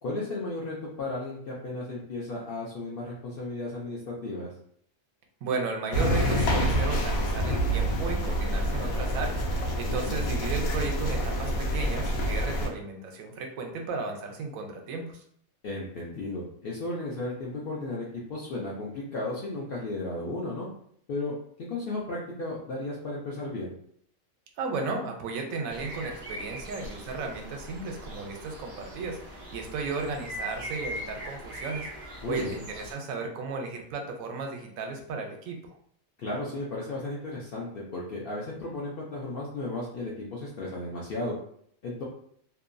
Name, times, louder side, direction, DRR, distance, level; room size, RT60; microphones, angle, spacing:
voice 1, 0.0-4.5 9.9-10.3 15.6-20.7 21.1-21.4 21.7-23.7 32.2-32.6 36.2-41.3 41.8-42.0, left 2 dB, 65° left, -4 dB, 0.5 m, -34 dB
voice 2, 5.4-15.2 24.6-31.9 32.3-35.6, right 4 dB, 80° right, 3 dB, 1.0 m, -34 dB
sound 1, 5.9-12.7, equal, 80° left, 1.0 m, -27 dB
sound 2, 25.7-32.9, right 1 dB, 35° right, 0.5 m, -41 dB
2.7 x 2.2 x 2.5 m, 0.65 s
omnidirectional pair, 1.4 m